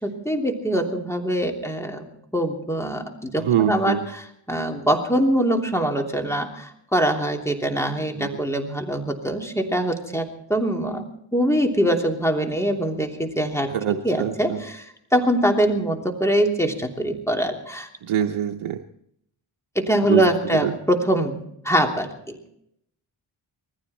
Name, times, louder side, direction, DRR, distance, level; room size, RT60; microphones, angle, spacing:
voice 1, 0.0-2.1 2.3-11.1 11.3-14.8 15.1-17.9 19.7-22.4, right 1 dB, 5° left, 3 dB, 3.0 m, -23 dB
voice 2, 3.4-4.1 8.2-8.4 13.7-14.6 18.0-18.8 20.1-20.2 20.5-20.7, right 9 dB, 90° right, 5 dB, 0.8 m, -24 dB
20.0 x 15.0 x 4.3 m, 0.72 s
cardioid pair, 50°, 49 cm